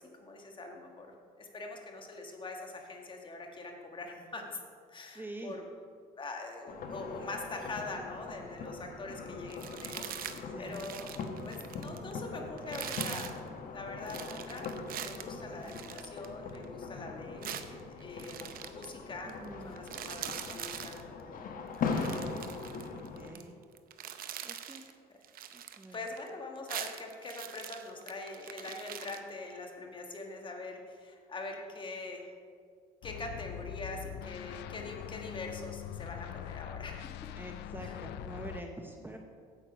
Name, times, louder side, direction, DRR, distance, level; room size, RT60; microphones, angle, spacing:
voice 1, 0.0-4.6 4.9-5.6 6.2-11.1 11.4-13.3 13.7-14.7 15.0-19.3 19.6-21.4 21.7-22.2 23.0-23.5 24.6-24.9 25.9-32.3 33.0-37.1 37.8-38.0 39.0-39.2, left 3 dB, 30° left, 2 dB, 1.5 m, -43 dB
voice 2, 5.1-5.6 10.4-10.8 15.5-15.8 19.2-19.7 22.9-23.5 24.4-24.9 25.5-26.0 37.4-39.2, right 1 dB, 10° right, 3 dB, 0.7 m, -46 dB
sound 1, 6.7-23.3, left 4 dB, 55° left, 1.1 m, -41 dB
sound 2, 9.5-10.4 10.7-12.1 12.6-13.4 14.1-16.7 17.4-18.9 19.3-19.4 19.7-21.0 21.7-23.4 23.7-24.9 25.2-26.3 26.6-29.2, right 10 dB, 60° right, 0.7 m, -43 dB
sound 3, 33.0-38.6, left 10 dB, 80° left, 0.4 m, -43 dB
9.0 x 8.0 x 5.0 m, 2.1 s
cardioid pair, 110°, 17 cm